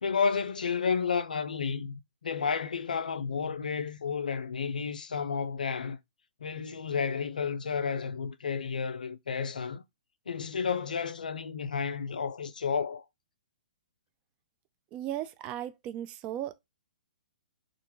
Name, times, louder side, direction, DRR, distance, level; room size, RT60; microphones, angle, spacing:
voice 1, 0.0-6.0 6.4-9.8 10.3-13.0, left 6 dB, 75° left, 0.4 m, -31 dB
voice 2, 14.9-16.6, right 12 dB, 25° right, 0.3 m, -36 dB
2.4 x 2.2 x 2.9 m
figure-of-eight pair, 120°, 4 cm